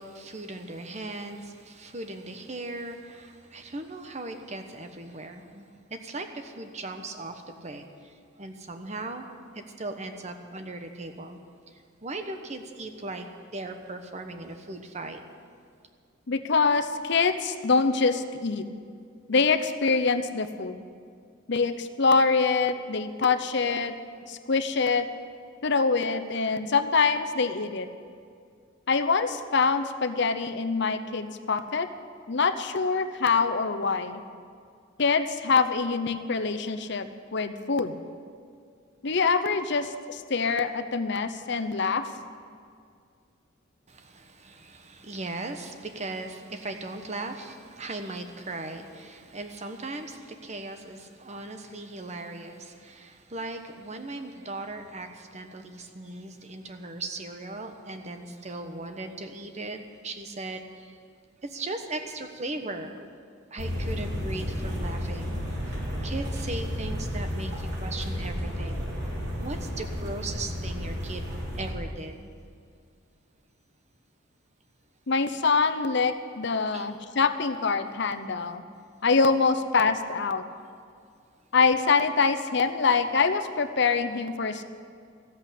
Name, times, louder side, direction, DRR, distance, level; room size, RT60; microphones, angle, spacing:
voice 1, 0.0-9.2 9.5-11.4 11.7-13.3 13.5-15.2 43.9-61.0 61.4-63.1 63.5-68.9 69.4-71.3 71.5-72.3 76.7-76.9, right 2 dB, 35° right, 6 dB, 1.1 m, -38 dB
voice 2, 16.3-18.6 19.3-20.8 21.5-23.9 24.3-25.1 25.6-27.9 28.9-31.9 32.3-34.2 35.0-37.9 39.0-42.1 75.1-78.6 79.0-80.4 81.5-84.6, left 4 dB, 60° left, 10 dB, 0.8 m, -25 dB
sound 1, 63.6-71.7, equal, 55° right, 3.7 m, -32 dB
14.5 x 8.0 x 9.9 m, 2.2 s
head